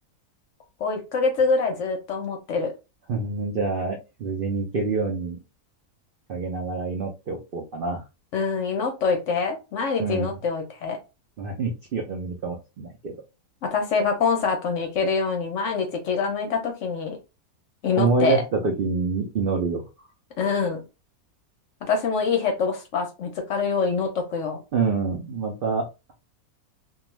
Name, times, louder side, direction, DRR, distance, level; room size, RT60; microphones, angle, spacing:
voice 1, 0.8-2.7 8.3-11.0 13.6-17.2 17.8-18.4 20.4-20.8 21.8-24.6, left 5 dB, 65° left, 4 dB, 0.8 m, -25 dB
voice 2, 3.1-5.4 6.3-8.0 10.0-10.3 11.4-13.2 18.0-19.8 24.7-25.8, right 4 dB, 75° right, 2 dB, 0.4 m, -26 dB
2.5 x 2.3 x 3.0 m, 0.28 s
omnidirectional pair, 1.6 m